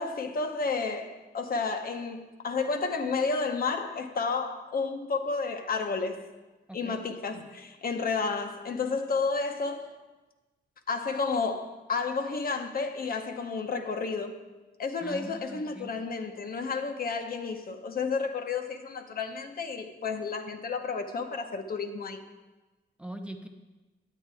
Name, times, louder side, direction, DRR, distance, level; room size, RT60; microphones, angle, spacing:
voice 1, 0.0-6.2 6.7-9.9 10.9-14.4 14.8-22.2, left 4 dB, 50° left, 0.8 m, -31 dB
voice 2, 6.7-7.0 15.0-15.9 23.0-23.5, right 1 dB, 5° right, 0.6 m, -41 dB
9.2 x 8.5 x 3.4 m
cardioid pair, 110°, 19 cm